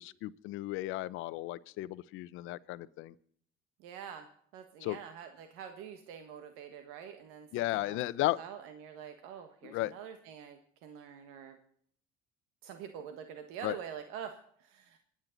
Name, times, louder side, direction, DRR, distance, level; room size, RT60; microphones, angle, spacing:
voice 1, 0.0-3.1 4.8-5.0 7.5-8.4 9.7-9.9 13.6-13.7, left 17 dB, 70° left, 17 dB, 0.8 m, -34 dB
voice 2, 3.8-4.3 4.5-11.6 12.6-15.0, right 8 dB, 85° right, 7 dB, 1.5 m, -46 dB
26.5 x 9.6 x 4.0 m, 0.64 s
cardioid pair, 105°, 21 cm